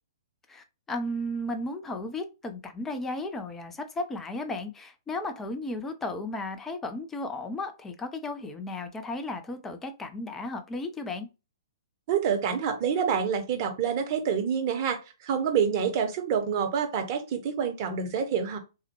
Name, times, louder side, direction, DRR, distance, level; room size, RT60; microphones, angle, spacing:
voice 1, 0.5-11.3, left 2 dB, 10° left, 0.4 m, -34 dB
voice 2, 12.1-18.6, right 7 dB, 35° right, 0.7 m, -27 dB
3.4 x 2.1 x 2.9 m
figure-of-eight pair, 115°, 2 cm